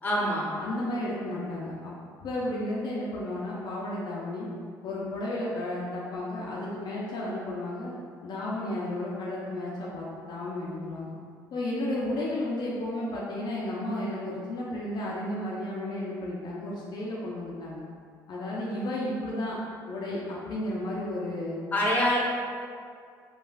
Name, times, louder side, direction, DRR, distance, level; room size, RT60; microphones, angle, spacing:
voice 1, 0.0-0.5 21.7-22.2, equal, 20° left, -5 dB, 0.8 m, -25 dB
voice 2, 0.6-1.9 2.2-4.5 4.8-7.9 8.2-11.1 11.5-17.8 18.3-19.6 19.9-21.6, left 1 dB, 60° left, -6 dB, 0.5 m, -33 dB
3.3 x 2.4 x 2.3 m, 2.2 s
supercardioid pair, 70°, 8 cm